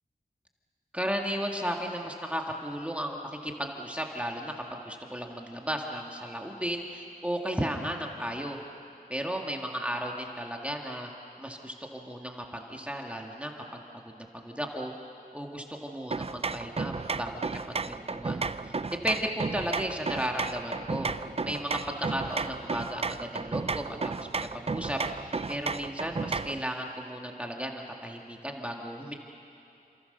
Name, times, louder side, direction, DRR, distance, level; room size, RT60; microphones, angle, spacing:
voice 1, 0.9-3.2 3.4-8.6 9.1-11.1 11.4-13.8 14.2-14.9 15.3-21.1 21.4-24.3 24.5-29.1, equal, 10° right, 1 dB, 2.1 m, -34 dB
sound 1, 16.1-26.6, right 4 dB, 40° right, 0.6 m, -33 dB
28.5 x 26.5 x 6.8 m, 2.7 s
wide cardioid pair, 75°, 16 cm